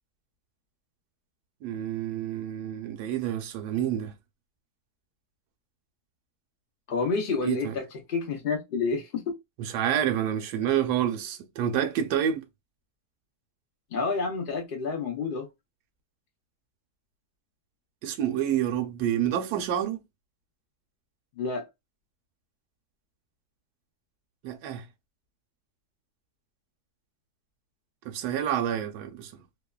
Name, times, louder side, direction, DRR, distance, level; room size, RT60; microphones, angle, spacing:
voice 1, 1.6-4.1 7.4-7.7 9.6-12.4 18.0-20.0 24.4-24.8 28.0-29.3, right 10 dB, 80° right, 1.1 m, -28 dB
voice 2, 6.9-9.4 13.9-15.5 21.4-21.7, left 4 dB, 90° left, 0.4 m, -29 dB
2.8 x 2.1 x 2.2 m
omnidirectional pair, 1.7 m